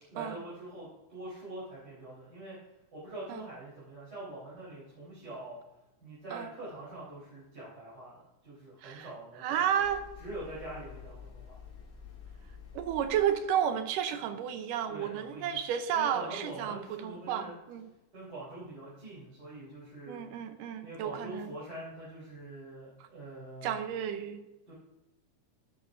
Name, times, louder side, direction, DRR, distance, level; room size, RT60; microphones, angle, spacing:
voice 1, 0.1-2.6 2.9-5.6 6.0-9.9 10.2-11.6 14.9-15.6 15.9-17.6 18.1-20.2 20.8-23.8 24.7-24.8, right 1 dB, 30° right, -9 dB, 4.3 m, -44 dB
voice 2, 9.4-10.0 12.7-17.9 20.1-21.5 23.6-24.4, right 9 dB, 85° right, 9 dB, 2.4 m, -32 dB
sound 1, 9.8-13.5, left 6 dB, 65° left, 3.4 m, -49 dB
12.0 x 10.5 x 2.6 m, 1.0 s
omnidirectional pair, 3.7 m